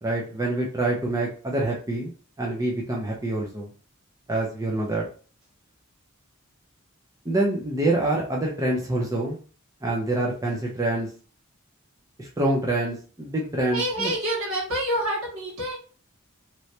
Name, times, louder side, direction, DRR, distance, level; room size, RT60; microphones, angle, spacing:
voice 1, 0.0-2.1 2.4-3.7 4.3-5.1 7.2-9.4 9.8-11.1 12.2-14.1, right 2 dB, 15° right, -3 dB, 0.6 m, -26 dB
voice 2, 13.7-15.8, right 1 dB, 65° right, -4 dB, 1.8 m, -27 dB
3.1 x 3.0 x 2.8 m, 0.38 s
head